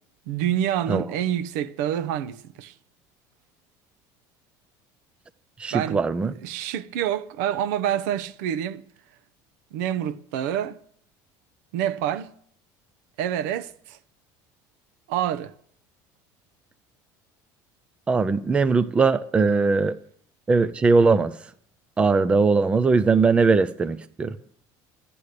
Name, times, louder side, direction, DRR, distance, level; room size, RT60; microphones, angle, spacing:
voice 1, 0.3-2.7 5.7-6.0 6.4-8.8 9.7-10.8 11.7-12.3 13.2-14.0 15.1-15.5, right 10 dB, 85° right, 0.8 m, -27 dB
voice 2, 5.6-6.3 18.1-19.9 20.5-21.3 22.0-24.3, right 4 dB, 10° right, 0.4 m, -20 dB
13.0 x 9.9 x 6.7 m
cardioid pair, 165°, 9 cm